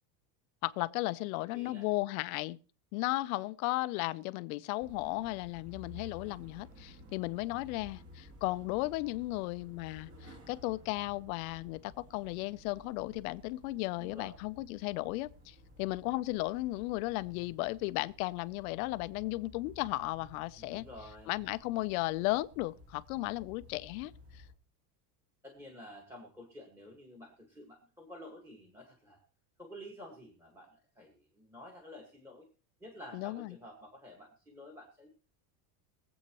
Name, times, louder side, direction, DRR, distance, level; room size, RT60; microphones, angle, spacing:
voice 1, 0.6-2.6 2.9-20.9 21.3-24.1 33.1-33.5, left 20 dB, 65° left, 0.7 m, -35 dB
voice 2, 1.5-1.9 14.0-14.3 20.6-21.3 25.4-29.2 29.6-32.5 32.8-35.1, left 1 dB, 5° right, 1.8 m, -50 dB
sound 1, 4.8-24.5, left 2 dB, 30° right, 2.1 m, -55 dB
23.0 x 8.1 x 3.0 m
cardioid pair, 170°, 45 cm